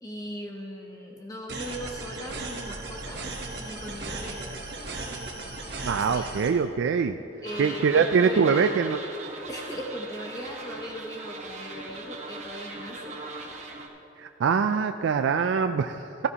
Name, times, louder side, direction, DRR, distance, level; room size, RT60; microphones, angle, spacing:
voice 1, 0.0-4.4 5.9-6.6 7.4-8.7 9.5-13.2, equal, 20° left, 0 dB, 0.9 m, -39 dB
sound 1, 1.5-6.5, right 2 dB, 55° right, 1.3 m, -36 dB
voice 2, 5.9-7.2 7.6-9.0 14.2-16.3, right 6 dB, 80° right, 8 dB, 0.3 m, -23 dB
sound 2, 7.4-13.9, right 3 dB, 40° right, 1.1 m, -39 dB
14.0 x 14.0 x 2.9 m, 2.8 s
head